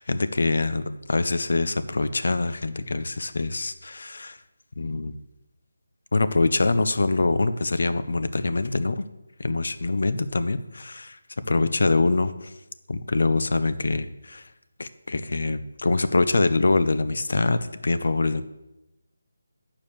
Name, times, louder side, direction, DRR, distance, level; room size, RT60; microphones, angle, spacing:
voice 1, 0.0-4.4 4.8-5.1 6.1-9.1 9.4-12.5 12.9-14.4 14.8-18.4, left 3 dB, 50° left, 13 dB, 0.5 m, -24 dB
8.7 x 4.8 x 7.1 m, 0.94 s
figure-of-eight pair, 180°, 0 cm